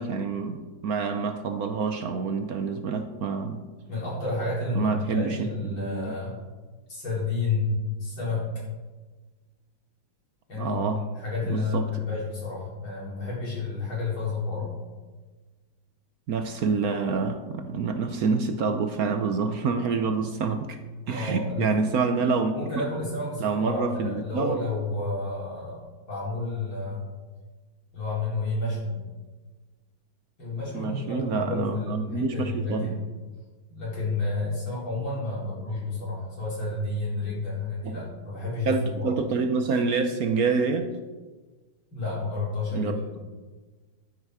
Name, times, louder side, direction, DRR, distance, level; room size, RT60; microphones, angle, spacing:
voice 1, 0.0-3.6 4.7-6.2 10.5-11.0 11.5-11.9 16.3-20.8 21.1-22.6 23.4-24.6 30.7-33.0 37.8-38.0 38.7-40.9 42.7-43.2, right 4 dB, 65° right, 7 dB, 0.9 m, -27 dB
voice 2, 3.9-6.4 6.9-7.7 8.0-8.5 10.5-14.7 19.9-20.1 21.1-21.7 22.5-27.1 27.9-29.0 30.4-33.0 33.7-39.2 41.9-43.1, left 3 dB, 65° left, -7 dB, 5.4 m, -30 dB
11.5 x 9.7 x 4.8 m, 1.3 s
omnidirectional pair, 2.3 m